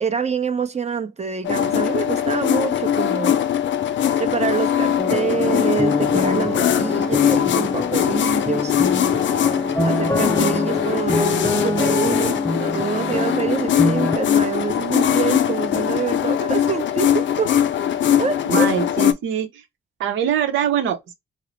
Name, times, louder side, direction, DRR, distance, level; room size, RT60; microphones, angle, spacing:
voice 1, 0.0-3.4 4.2-8.8 9.8-17.5 18.2-18.7, right 6 dB, 35° right, 0.8 m, -26 dB
sound 1, 1.4-19.1, left 10 dB, 70° left, 0.5 m, -21 dB
sound 2, 5.0-14.2, left 2 dB, 15° left, 0.5 m, -25 dB
voice 2, 18.5-19.6 20.0-21.1, right 9 dB, 85° right, 0.8 m, -23 dB
3.8 x 2.1 x 3.1 m
cardioid pair, 60°, 20 cm